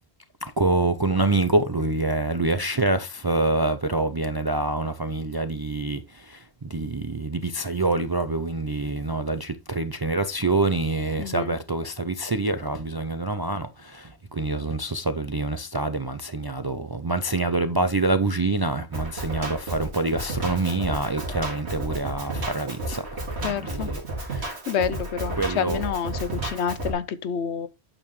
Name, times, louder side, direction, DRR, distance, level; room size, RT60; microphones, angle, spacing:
voice 1, 0.4-6.0 6.3-6.4 6.6-24.0 24.3-24.6 25.4-25.8 26.3-26.4, right 2 dB, 35° right, 0.4 m, -26 dB
voice 2, 11.2-11.6 23.4-23.9 24.7-27.7, left 7 dB, 80° left, 1.0 m, -28 dB
Drum kit, 18.9-26.9, right 2 dB, 80° right, 2.5 m, -32 dB
8.7 x 6.8 x 3.1 m
omnidirectional pair, 1.1 m